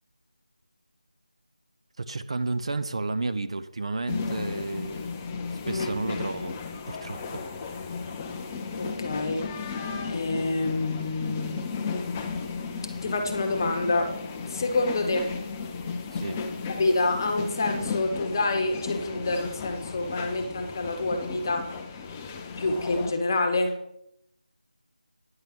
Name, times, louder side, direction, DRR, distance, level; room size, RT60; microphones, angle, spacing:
voice 1, 2.0-5.1 5.7-6.5 6.9-7.5 16.1-16.4, right 3 dB, 40° right, 0.7 m, -32 dB
sound 1, 4.1-23.1, left 5 dB, 10° left, 0.4 m, -35 dB
voice 2, 5.6-6.0 8.8-9.5 10.1-11.6 13.0-14.2 14.5-15.3 16.8-21.7 22.6-23.8, left 2 dB, 25° left, 1.2 m, -27 dB
9.7 x 6.6 x 6.0 m
figure-of-eight pair, 170°, 5 cm